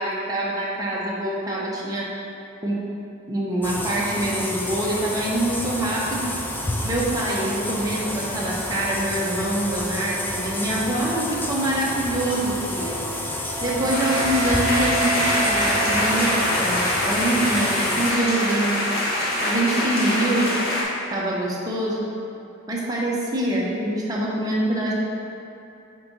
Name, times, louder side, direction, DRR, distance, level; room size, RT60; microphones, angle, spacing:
voice 1, 0.0-2.1 2.6-2.8 3.3-6.3 6.8-13.0 13.6-20.5 21.1-22.1 22.7-24.9, right 1 dB, 15° right, -5 dB, 0.8 m, -25 dB
sound 1, 3.6-18.1, left 1 dB, 10° left, 0.3 m, -30 dB
Wind instrument woodwind instrument, 12.8-17.0, right 2 dB, 70° right, 0.6 m, -30 dB
sound 2, 13.9-20.8, left 1 dB, 45° left, 1.2 m, -24 dB
4.5 x 4.3 x 5.3 m, 2.7 s
head